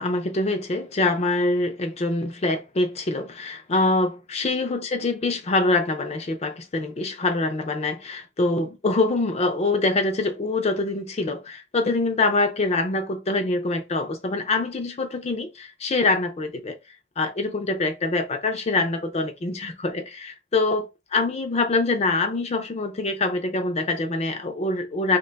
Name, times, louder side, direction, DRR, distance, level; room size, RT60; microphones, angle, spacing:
voice 1, 0.0-16.8 17.2-25.2, left 2 dB, 35° left, 0.4 m, -24 dB
2.6 x 2.2 x 3.9 m
head